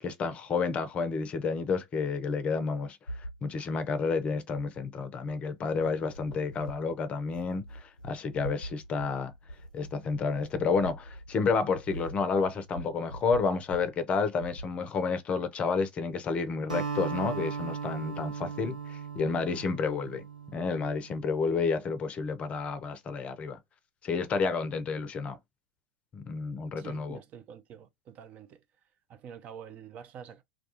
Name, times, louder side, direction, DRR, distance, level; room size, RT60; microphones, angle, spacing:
voice 1, 0.0-3.0 3.4-9.3 9.7-20.2 20.5-23.6 24.0-25.4 26.1-27.2, left 4 dB, 30° left, 0.5 m, -30 dB
sound 1, 3.1-3.4 4.5-4.9 5.3-13.9 14.4-14.8, right 1 dB, 85° left, 0.4 m, -44 dB
Acoustic guitar, 16.7-21.2, right 6 dB, 80° right, 0.8 m, -37 dB
voice 2, 26.8-28.6 29.1-30.4, right 8 dB, 40° right, 0.4 m, -47 dB
2.3 x 2.2 x 2.8 m
figure-of-eight pair, 80°, 4 cm